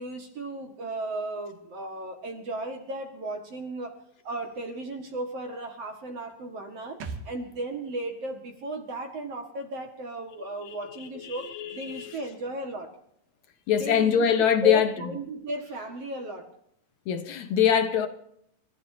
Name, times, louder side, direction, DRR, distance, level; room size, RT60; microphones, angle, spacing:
voice 1, 0.0-4.0 4.2-12.9 13.7-14.3 14.6-16.5, right 1 dB, 45° right, 2.4 m, -35 dB
sound 1, 7.0-10.5 10.8-10.9, right 4 dB, 75° right, 3.7 m, -45 dB
voice 2, 10.7-12.2 13.7-14.9 17.1-18.1, left 8 dB, 65° left, 1.9 m, -24 dB
29.5 x 15.0 x 2.8 m
omnidirectional pair, 4.6 m